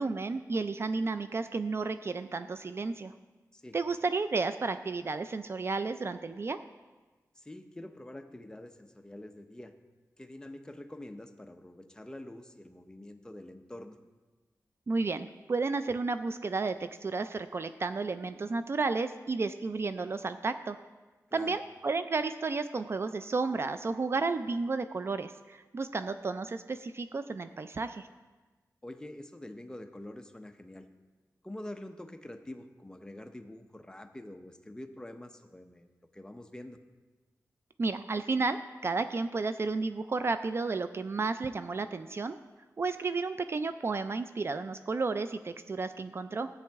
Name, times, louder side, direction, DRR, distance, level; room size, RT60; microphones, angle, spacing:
voice 1, 0.0-3.1 3.7-6.6 14.9-20.8 21.3-28.1 37.8-42.3 42.8-46.5, right 3 dB, 45° right, 11 dB, 0.4 m, -32 dB
voice 2, 7.4-9.7 10.2-14.0 21.3-21.6 28.8-30.9 31.4-35.9 36.1-36.8, left 1 dB, 10° left, 6 dB, 0.7 m, -46 dB
13.5 x 8.4 x 3.5 m, 1.3 s
wide cardioid pair, 90°, 6 cm